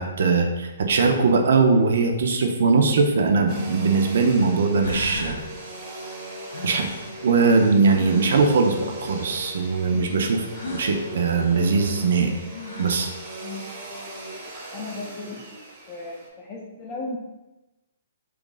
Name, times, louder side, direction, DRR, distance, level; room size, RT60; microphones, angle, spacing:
voice 1, 0.0-5.4 6.6-6.9 7.2-12.3 12.8-13.1, right 4 dB, 65° right, 4 dB, 0.5 m, -20 dB
Domestic sounds home sounds, 3.5-16.3, right 2 dB, 25° right, 0.7 m, -39 dB
sound 1, 4.4-4.5 4.8-5.4 6.5-8.5 10.5-10.9 12.2-12.3 12.5-13.1, left 2 dB, 70° left, 0.6 m, -37 dB
voice 2, 13.4-13.7 14.7-15.4 15.9-17.2, left 2 dB, 20° left, -2 dB, 0.6 m, -36 dB
2.9 x 2.4 x 3.8 m, 1.0 s
hypercardioid pair, 165°, 0 cm